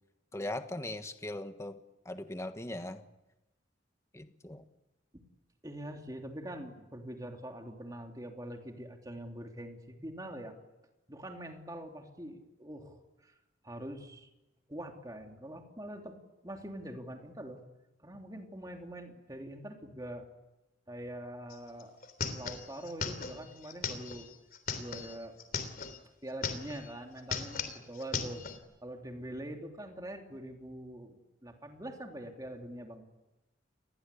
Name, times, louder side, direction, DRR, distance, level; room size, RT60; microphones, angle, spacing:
voice 1, 0.3-1.8 2.0-3.0 4.1-4.6, left 1 dB, 15° left, 8 dB, 1.4 m, -39 dB
voice 2, 5.6-10.6 11.1-13.3 13.6-14.3 14.7-16.2 16.4-17.6 18.0-20.3 20.9-22.0 22.3-24.3 24.8-25.4 26.2-28.5 28.8-33.0, right 1 dB, 20° right, 3 dB, 3.2 m, -44 dB
sound 1, 21.5-21.6 21.8-26.0 26.3-26.9 27.2-28.6, left 5 dB, 50° left, 3.3 m, -38 dB
29.0 x 21.0 x 8.5 m, 0.99 s
head